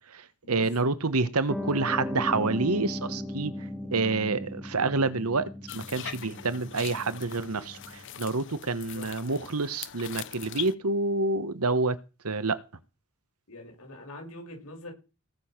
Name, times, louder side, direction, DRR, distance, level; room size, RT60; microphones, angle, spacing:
voice 1, 0.1-12.0 12.2-12.6, right 3 dB, 80° right, 1.3 m, -28 dB
Piano, 1.5-8.0, left 1 dB, ahead, 2.7 m, -37 dB
sound 1, 5.7-10.7, left 11 dB, 55° left, 0.7 m, -41 dB
voice 2, 13.5-14.9, left 1 dB, 75° left, 6.4 m, -44 dB
19.0 x 7.0 x 6.0 m
head